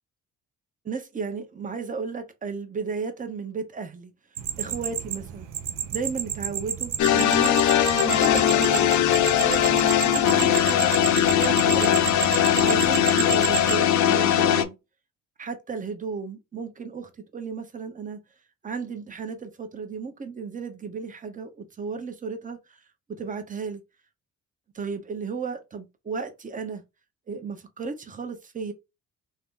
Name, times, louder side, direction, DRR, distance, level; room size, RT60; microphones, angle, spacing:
voice 1, 0.8-4.1 4.6-5.5 5.9-7.5 8.0-8.9 9.2-10.9 11.3-12.1 12.6-14.7 15.4-18.2 18.6-22.6 23.2-23.8 24.7-26.8 27.3-28.7, right 5 dB, 25° right, 0.8 m, -34 dB
sound 1, 4.4-13.8, right 10 dB, 90° right, 0.6 m, -31 dB
sound 2, 7.0-14.6, left 10 dB, 75° left, 0.6 m, -20 dB
2.8 x 2.5 x 3.6 m
cardioid pair, 90°, 30 cm